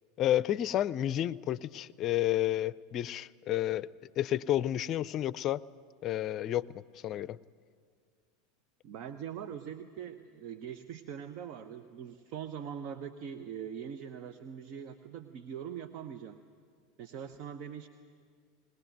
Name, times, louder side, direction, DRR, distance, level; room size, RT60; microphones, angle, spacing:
voice 1, 0.2-3.9 4.2-5.6 6.0-7.4, left 12 dB, 40° left, 20 dB, 0.5 m, -31 dB
voice 2, 8.8-16.4 17.0-17.9, right 8 dB, 50° right, 9 dB, 0.9 m, -42 dB
20.5 x 19.5 x 9.3 m, 2.1 s
hypercardioid pair, 85°, 0 cm